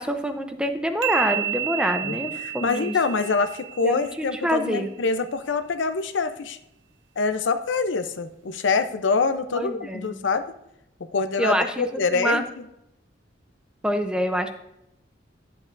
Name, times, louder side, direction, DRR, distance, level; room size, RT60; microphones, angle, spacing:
voice 1, 0.0-2.9 3.8-4.9 9.5-10.3 11.4-11.9 12.1-12.4 13.8-14.5, equal, 5° right, 7 dB, 0.6 m, -26 dB
sound 1, 1.0-4.6, right 11 dB, 85° right, 0.7 m, -31 dB
voice 2, 2.0-6.6 7.2-10.4 11.1-12.4, left 4 dB, 85° left, 10 dB, 0.6 m, -25 dB
10.5 x 7.5 x 2.5 m, 0.83 s
head